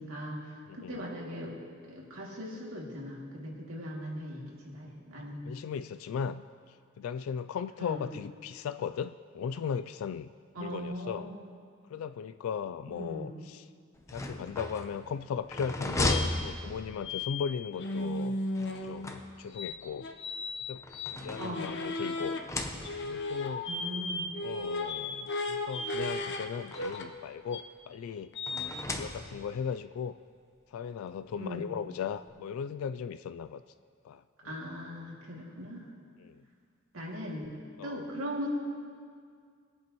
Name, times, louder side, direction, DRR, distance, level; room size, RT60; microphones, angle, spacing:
voice 1, 0.0-1.5 1.8-5.4 7.8-8.0 10.5-11.4 12.9-13.3 21.4-21.7 23.7-24.3 31.4-31.7 34.4-35.9 36.9-37.5 37.8-38.6, equal, 80° right, -3 dB, 2.4 m, -39 dB
voice 2, 0.7-1.1 5.4-6.4 7.0-11.3 11.9-13.7 14.1-18.4 18.8-20.1 20.7-20.8 21.1-22.4 23.0-23.7 24.4-28.3 28.9-30.1 30.7-33.6 34.0-34.6 36.2-36.4 37.8-38.1, left 7 dB, 80° left, 12 dB, 0.3 m, -37 dB
sound 1, 13.9-17.3 18.5-19.7 20.5-21.9 22.3-23.3 24.2-24.3 24.6-24.7 25.9-27.2 28.5-29.6, left 1 dB, 15° left, 0.7 m, -36 dB
sound 2, 16.1-16.3 17.0-17.5 17.7-19.2 19.5-22.4 22.8-26.4 26.7-27.0 27.5-27.6 28.3-28.8, left 2 dB, 55° left, 0.8 m, -35 dB
21.5 x 8.4 x 3.0 m, 2.1 s
head